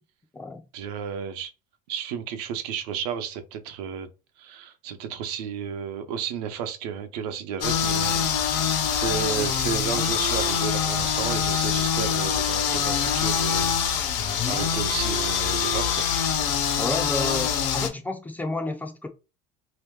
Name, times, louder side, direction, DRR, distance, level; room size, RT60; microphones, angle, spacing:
voice 1, 0.7-1.5 1.9-4.1 4.4-13.8 14.5-16.1, right 7 dB, 85° right, 0.7 m, -32 dB
sound 1, 7.6-17.9, left 7 dB, 85° left, 1.1 m, -24 dB
voice 2, 16.8-19.1, left 2 dB, 10° left, 0.3 m, -30 dB
3.0 x 2.8 x 3.5 m
cardioid pair, 155°, 20 cm